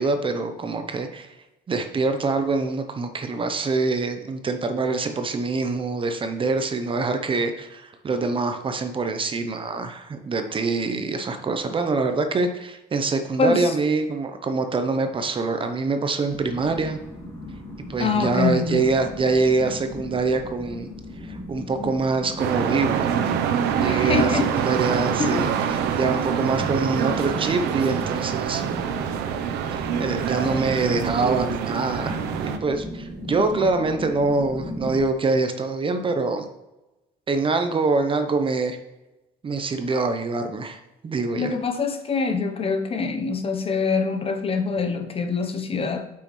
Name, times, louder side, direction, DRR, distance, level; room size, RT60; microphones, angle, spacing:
voice 1, 0.0-1.3 1.7-17.0 17.9-20.9 21.2-23.2 23.7-28.6 29.7-36.5 37.3-38.8 39.4-41.5, right 3 dB, 30° right, 7 dB, 0.8 m, -25 dB
voice 2, 13.4-13.7 18.0-18.9 23.8-24.5 25.2-25.6 41.3-46.1, left 4 dB, 35° left, 7 dB, 0.8 m, -25 dB
sound 1, 16.3-35.0, left 1 dB, 20° left, 2.6 m, -37 dB
sound 2, 22.4-32.6, right 8 dB, 85° right, 0.7 m, -25 dB
8.1 x 5.7 x 3.1 m, 1.0 s
cardioid pair, 110°, 17 cm